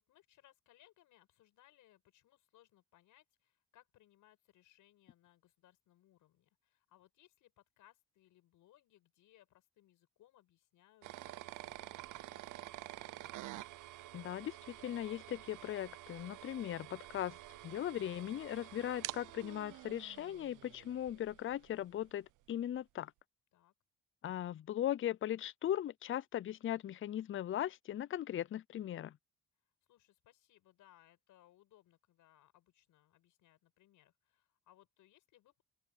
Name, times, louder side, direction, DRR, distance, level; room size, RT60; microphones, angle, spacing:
voice 1, 0.0-13.3 23.5-23.7 29.9-35.6, left 14 dB, 85° left, 7.6 m, -68 dB
sound 1, 11.0-21.8, right 16 dB, 80° right, 0.7 m, -49 dB
voice 2, 14.1-17.4 17.6-23.1 24.2-29.2, left 11 dB, 45° left, 0.5 m, -38 dB
open air
cardioid pair, 90°, 30 cm